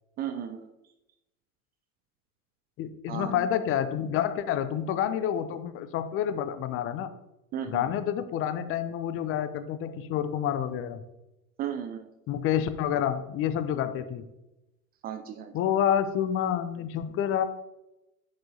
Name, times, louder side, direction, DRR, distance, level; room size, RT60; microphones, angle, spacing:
voice 1, 0.2-0.7 3.1-3.4 7.5-7.8 11.6-12.0 15.0-15.5, right 9 dB, 25° right, 7 dB, 0.4 m, -34 dB
voice 2, 2.8-7.1 7.7-11.0 12.3-14.2 15.5-17.4, left 9 dB, 30° left, 11 dB, 0.6 m, -28 dB
7.5 x 6.9 x 2.7 m, 0.91 s
figure-of-eight pair, 80°, 44 cm